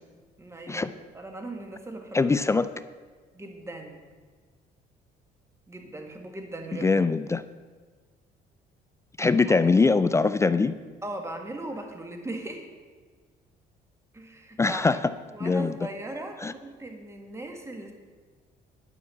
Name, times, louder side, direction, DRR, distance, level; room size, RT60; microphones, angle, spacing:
voice 1, 0.4-2.3 3.3-4.1 5.7-6.9 9.5-9.6 11.0-12.7 14.1-17.9, right 2 dB, 15° right, 4 dB, 1.8 m, -39 dB
voice 2, 2.1-2.7 6.8-7.4 9.2-10.7 14.6-15.1 15.4-15.7 16.4-16.5, left 4 dB, 15° left, 13 dB, 0.3 m, -22 dB
11.0 x 5.6 x 8.2 m, 1.5 s
cardioid pair, 110°, 17 cm